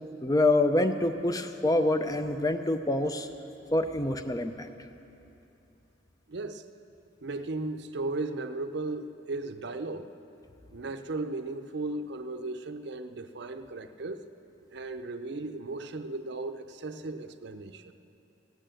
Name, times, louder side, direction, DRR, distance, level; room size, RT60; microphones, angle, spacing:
voice 1, 0.2-3.3 3.7-4.7, left 2 dB, 20° left, 9 dB, 0.5 m, -26 dB
voice 2, 6.3-6.7 7.2-10.1 10.7-14.3 14.7-17.9, right 2 dB, 60° right, 9 dB, 0.6 m, -36 dB
16.0 x 8.9 x 7.6 m, 2.8 s
head